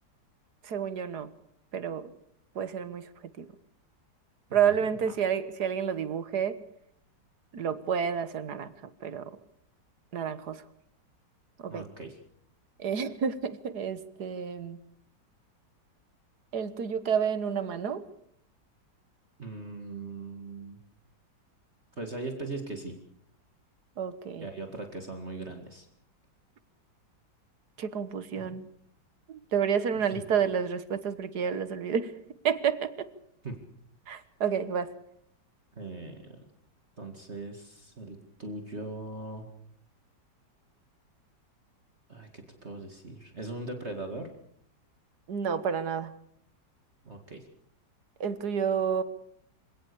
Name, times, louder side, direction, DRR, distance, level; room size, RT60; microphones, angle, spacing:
voice 1, 0.6-1.3 1.7-2.1 2.6-3.5 4.5-6.6 7.5-8.7 9.0-9.4 10.1-10.6 11.6-11.8 12.8-14.8 16.5-18.1 24.0-24.5 27.8-28.7 29.3-32.1 32.4-33.1 34.1-34.9 45.3-46.1 48.2-49.0, right 7 dB, 65° right, 14 dB, 1.8 m, -30 dB
voice 2, 11.7-12.1 19.4-20.8 21.9-23.0 24.4-25.9 28.4-28.6 29.9-30.2 33.4-33.6 35.8-36.4 37.0-39.5 42.1-44.3 47.0-47.5, right 2 dB, 35° right, 4 dB, 2.4 m, -40 dB
26.5 x 17.5 x 6.9 m, 0.69 s
omnidirectional pair, 1.9 m